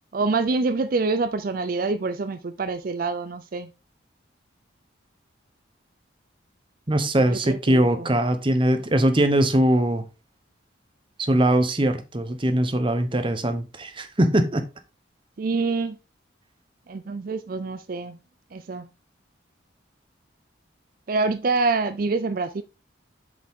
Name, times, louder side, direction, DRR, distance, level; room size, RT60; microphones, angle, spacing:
voice 1, 0.1-3.7 7.3-8.1 15.4-16.0 16.9-18.2 18.5-18.9 21.1-22.6, right 3 dB, 45° right, 0.4 m, -26 dB
voice 2, 6.9-10.0 11.2-14.6, right 1 dB, 25° right, 0.8 m, -21 dB
7.4 x 5.1 x 3.6 m
head